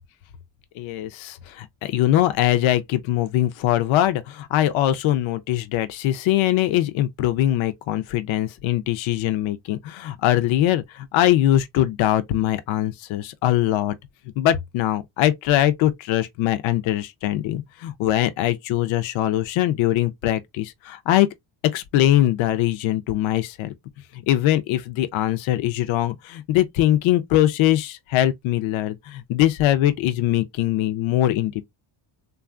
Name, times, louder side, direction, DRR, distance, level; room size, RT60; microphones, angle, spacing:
voice 1, 0.8-14.0 14.4-21.3 21.7-23.7 24.1-31.6, left 13 dB, 70° left, 0.5 m, -22 dB
3.0 x 2.4 x 2.3 m
cardioid pair, 120°, 50 cm